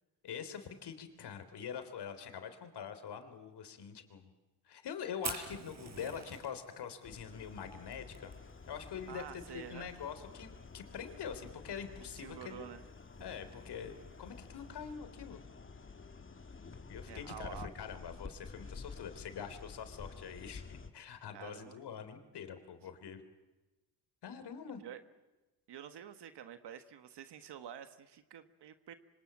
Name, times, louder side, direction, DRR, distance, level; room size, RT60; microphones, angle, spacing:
voice 1, 0.2-4.3 4.7-8.3 8.7-12.7 13.2-15.4 16.9-23.2 24.2-24.8, left 7 dB, 75° left, 9 dB, 3.7 m, -44 dB
Fire, 5.1-14.9, right 4 dB, 40° right, 5.0 m, -49 dB
sound 1, 7.0-20.9, left 4 dB, 30° left, 2.1 m, -51 dB
voice 2, 9.1-9.9 12.2-12.8 17.0-17.7 21.3-21.8 22.8-22.9 24.8-25.0 25.7-28.9, right 9 dB, 80° right, 9 dB, 1.5 m, -48 dB
27.0 x 24.5 x 8.9 m, 1.1 s
cardioid pair, 100°, 40 cm